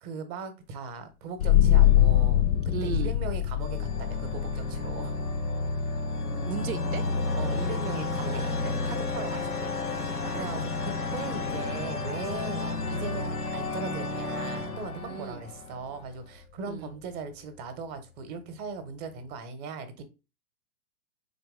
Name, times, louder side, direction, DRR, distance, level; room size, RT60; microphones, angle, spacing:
voice 1, 0.0-5.2 7.3-20.0, right 4 dB, 25° right, 0.7 m, -39 dB
sound 1, 1.4-12.6, left 11 dB, 70° left, 0.6 m, -27 dB
sound 2, 1.8-3.0 3.6-16.2, left 3 dB, 90° left, 1.0 m, -32 dB
voice 2, 2.7-3.1 6.5-7.0 8.2-8.6 10.2-10.6 14.9-15.4 16.7-16.9, right 7 dB, 65° right, 0.6 m, -36 dB
Mallet percussion, 7.2-16.7, left 5 dB, ahead, 0.5 m, -46 dB
3.9 x 3.1 x 3.5 m
figure-of-eight pair, 110°, 45 cm